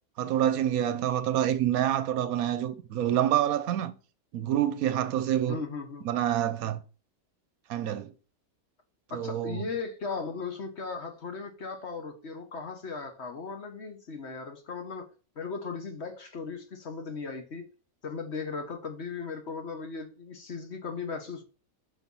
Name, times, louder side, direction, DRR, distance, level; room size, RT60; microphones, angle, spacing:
voice 1, 0.2-3.9 4.3-5.6 6.0-6.8 7.7-8.1 9.1-9.7, right 11 dB, 70° right, 1.0 m, -27 dB
voice 2, 5.5-6.1 9.1-15.1 15.4-17.7 18.0-21.4, left 4 dB, 50° left, 1.3 m, -37 dB
6.1 x 4.4 x 5.4 m
omnidirectional pair, 1.6 m